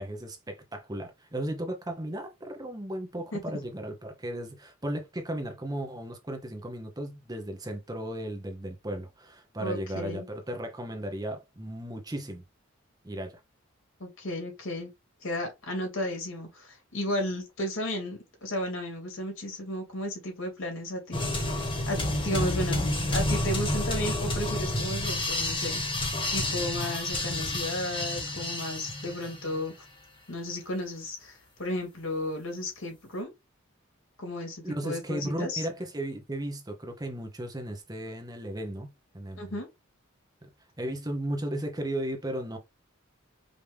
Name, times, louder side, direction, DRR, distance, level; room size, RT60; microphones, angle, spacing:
voice 1, 0.0-12.4 13.0-13.4 34.6-39.6 40.4-40.5 40.8-42.6, right 1 dB, 20° right, 0.9 m, -35 dB
voice 2, 9.6-10.3 14.0-14.9 15.2-25.8 26.3-29.7 30.3-33.3 34.2-35.7 39.4-39.7, left 1 dB, 80° left, 2.6 m, -34 dB
sound 1, 21.1-29.6, left 1 dB, 25° left, 1.5 m, -30 dB
5.2 x 2.9 x 3.4 m
head